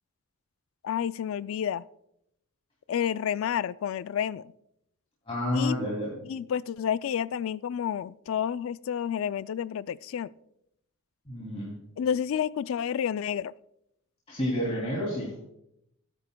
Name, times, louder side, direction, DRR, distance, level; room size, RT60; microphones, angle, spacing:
voice 1, 0.8-1.8 2.9-4.5 5.5-5.8 6.2-10.3 12.0-13.5, left 8 dB, 65° left, 0.3 m, -30 dB
voice 2, 5.3-6.2 11.3-11.8 14.3-15.4, left 1 dB, 25° left, 2.7 m, -30 dB
17.5 x 9.9 x 2.2 m
head